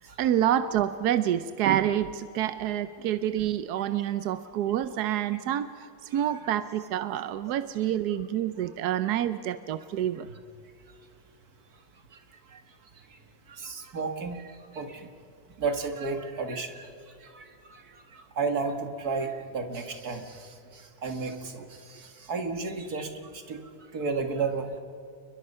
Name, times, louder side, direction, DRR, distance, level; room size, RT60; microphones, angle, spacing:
voice 1, 0.2-5.9 6.1-10.3, right 11 dB, 65° right, 12 dB, 1.0 m, -27 dB
voice 2, 13.5-15.1 15.6-16.9 17.2-23.6 23.9-24.7, right 4 dB, 50° right, 6 dB, 2.3 m, -33 dB
29.5 x 21.5 x 5.6 m, 2.5 s
omnidirectional pair, 2.2 m